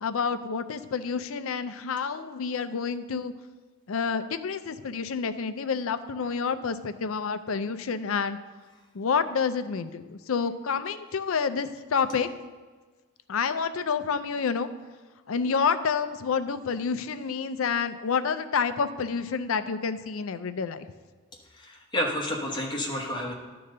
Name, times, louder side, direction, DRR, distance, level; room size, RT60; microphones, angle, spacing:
voice 1, 0.0-3.3 3.9-8.4 8.9-12.3 13.3-14.7 15.3-20.9, left 5 dB, 70° left, 11 dB, 0.5 m, -28 dB
voice 2, 21.5-23.3, left 1 dB, 20° left, -1 dB, 1.2 m, -30 dB
11.5 x 3.9 x 6.6 m, 1.3 s
head